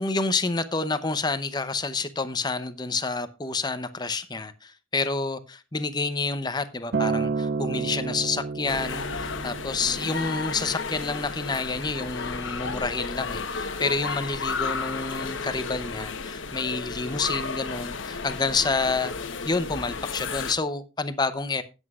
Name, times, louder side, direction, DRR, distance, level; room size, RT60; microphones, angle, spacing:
voice 1, 0.0-21.6, left 3 dB, 20° left, 0.7 m, -29 dB
Acoustic guitar, 6.9-11.2 12.1-12.2, right 4 dB, 50° right, 0.4 m, -31 dB
sound 1, 8.7-20.5, left 4 dB, 80° left, 1.0 m, -33 dB
17.0 x 8.0 x 2.4 m
head